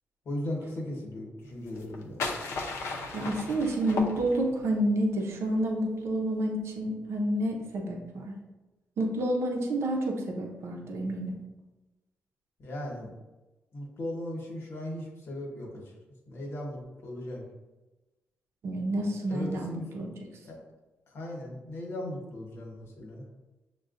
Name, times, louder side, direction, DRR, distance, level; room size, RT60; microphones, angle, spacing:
voice 1, 0.2-2.2 12.6-13.1 13.7-15.9 16.3-17.4 19.3-19.8 20.4-20.6 21.1-23.2, left 1 dB, 60° left, -1 dB, 1.2 m, -37 dB
sound 1, 1.7-4.7, left 3 dB, 80° left, 0.6 m, -35 dB
voice 2, 3.1-8.3 9.0-11.4 18.6-20.1, right 1 dB, 70° right, 1 dB, 0.6 m, -29 dB
6.2 x 2.3 x 2.5 m, 1.1 s
cardioid pair, 85°, 5 cm